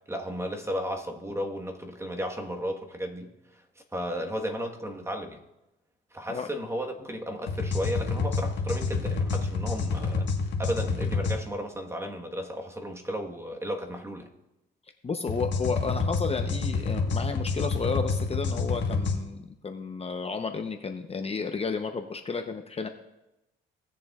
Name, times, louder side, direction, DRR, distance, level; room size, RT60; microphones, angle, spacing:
voice 1, 0.1-3.6 3.9-5.4 6.1-10.3 10.6-14.3, equal, 15° right, 1.3 m, -34 dB
sound 1, 7.5-11.4 15.3-19.2, left 4 dB, 65° left, 1.4 m, -28 dB
voice 2, 15.0-22.9, left 5 dB, 30° left, 0.8 m, -32 dB
18.0 x 6.9 x 2.4 m
cardioid pair, 90°, 20 cm